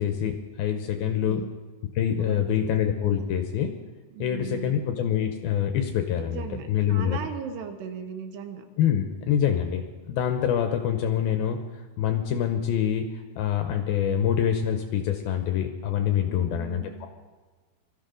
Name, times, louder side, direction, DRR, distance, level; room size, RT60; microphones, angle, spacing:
voice 1, 0.0-1.4 2.0-3.7 4.2-6.4 6.7-7.2 8.8-9.8 10.1-11.6 12.0-17.1, left 9 dB, 75° left, 6 dB, 2.3 m, -25 dB
voice 2, 0.9-1.5 2.2-2.8 3.1-3.3 4.1-4.8 6.1-8.7 16.3-17.1, right 7 dB, 75° right, 7 dB, 2.9 m, -38 dB
23.5 x 14.0 x 3.8 m, 1.3 s
omnidirectional pair, 5.0 m